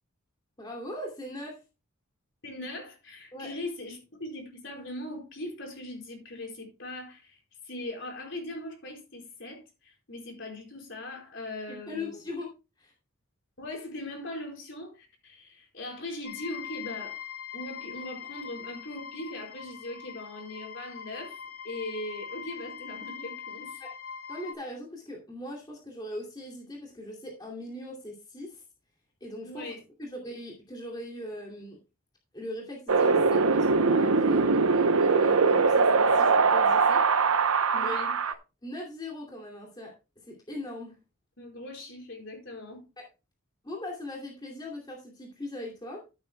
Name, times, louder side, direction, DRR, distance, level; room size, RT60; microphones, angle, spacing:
voice 1, 0.6-1.6 3.3-3.5 11.9-12.5 12.8-12.9 23.8-23.9 24.3-28.6 29.2-29.7 30.0-31.8 32.3-37.0 37.7-38.0 38.6-39.9 40.2-40.9 43.0-43.1 43.6-46.0, left 1 dB, 20° left, 2.6 m, -40 dB
voice 2, 2.4-7.4 7.6-12.2 13.6-17.2 17.5-21.4 21.6-23.8 29.4-29.8 37.7-38.1 41.4-42.8, left 1 dB, 60° left, 4.7 m, -40 dB
sound 1, 16.2-24.5, left 8 dB, 80° left, 2.8 m, -42 dB
Wind, 32.9-38.3, right 4 dB, 85° right, 0.8 m, -22 dB
14.5 x 8.9 x 2.3 m
head